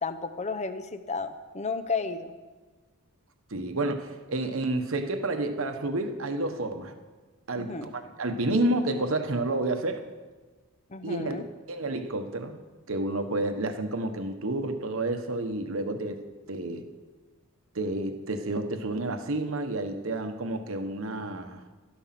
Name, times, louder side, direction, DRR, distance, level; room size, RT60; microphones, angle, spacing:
voice 1, 0.0-2.3 7.5-7.9 10.9-11.5, left 4 dB, 30° left, 11 dB, 0.7 m, -33 dB
voice 2, 3.5-6.9 7.5-10.1 11.0-11.4 11.7-12.6 12.9-16.2 16.5-16.8 17.7-21.6, right 2 dB, 60° right, 7 dB, 1.1 m, -30 dB
12.5 x 11.5 x 5.9 m, 1.4 s
head